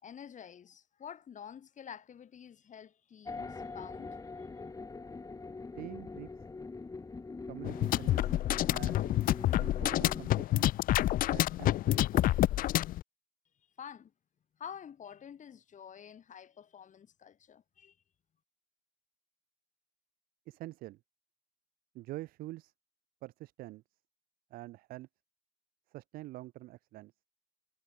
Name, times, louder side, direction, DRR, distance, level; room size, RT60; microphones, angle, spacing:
voice 1, 0.0-4.5 13.8-14.1 14.6-18.0, left 8 dB, 60° left, 6.8 m, -49 dB
sound 1, 3.2-10.3, left 3 dB, 25° left, 1.0 m, -43 dB
voice 2, 5.8-6.3 7.5-8.3 8.7-9.1 9.6-10.7 11.3-12.3 20.5-21.0 21.9-22.7 23.2-23.8 24.5-25.1 25.9-27.1, right 17 dB, 85° right, 4.4 m, -46 dB
sound 2, 7.6-13.0, left 14 dB, 75° left, 0.8 m, -28 dB
supercardioid pair, 60°, 15 cm